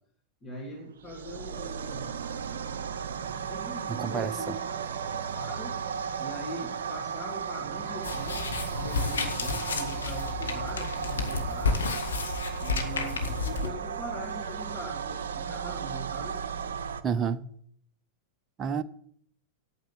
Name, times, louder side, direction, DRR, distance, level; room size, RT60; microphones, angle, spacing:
voice 1, 0.4-2.1 3.4-4.8 5.2-5.8 6.2-11.9 12.5-16.4, equal, 20° left, 3.1 m, -41 dB
sound 1, 1.0-17.0, right 7 dB, 60° right, 0.7 m, -35 dB
voice 2, 3.9-4.3 17.0-17.5 18.6-18.8, right 7 dB, 25° right, 0.7 m, -29 dB
sound 2, 7.7-13.2, left 3 dB, 5° left, 3.1 m, -53 dB
sound 3, 8.0-13.7, left 4 dB, 70° left, 1.6 m, -31 dB
9.0 x 8.3 x 8.5 m
figure-of-eight pair, 90°, 0 cm